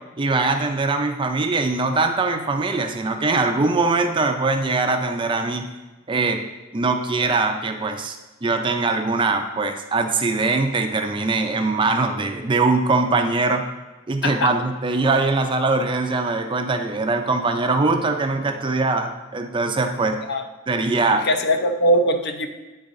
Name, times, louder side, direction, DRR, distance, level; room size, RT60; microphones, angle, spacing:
voice 1, 0.2-5.7 6.1-6.4 6.7-13.7 14.1-20.3 20.7-21.3, right 3 dB, 25° right, 6 dB, 0.4 m, -22 dB
voice 2, 21.1-22.5, equal, 50° left, 6 dB, 0.6 m, -21 dB
9.4 x 4.0 x 3.7 m, 1.2 s
head